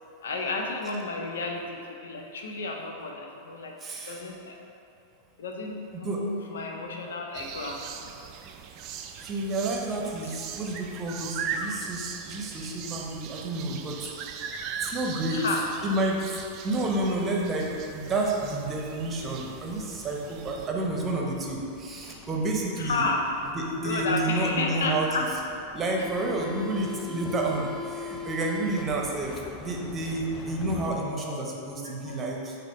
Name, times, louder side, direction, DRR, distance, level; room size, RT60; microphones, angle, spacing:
voice 1, 0.2-3.7 4.1-4.5 5.4-8.2 15.3-15.7 22.8-23.4 23.8-25.3 31.1-31.6 32.1-32.3, left 3 dB, 65° left, 1 dB, 0.7 m, -32 dB
voice 2, 3.8-4.2 6.0-6.2 9.2-14.0 14.8-15.4 15.8-16.2 16.6-23.0 23.5-25.1 25.7-29.3 29.6-32.5, right 2 dB, 20° right, -1 dB, 0.9 m, -30 dB
sound 1, 7.3-20.7, right 6 dB, 40° right, 0.4 m, -39 dB
sound 2, 16.8-31.0, left 5 dB, 25° left, 0.5 m, -43 dB
6.4 x 3.0 x 5.3 m, 2.6 s
figure-of-eight pair, 90°, 0 cm